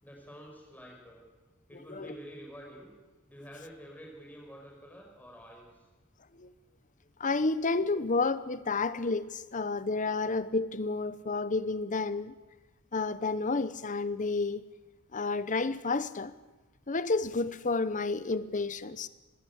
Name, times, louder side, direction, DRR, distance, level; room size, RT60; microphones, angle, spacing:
voice 1, 0.0-1.2 1.7-2.9 3.3-5.9, equal, 10° left, 5.2 m, -48 dB
voice 2, 7.2-12.3 12.9-14.6 15.1-16.3 16.9-19.1, left 3 dB, 40° left, 0.9 m, -30 dB
19.5 x 17.0 x 8.1 m
head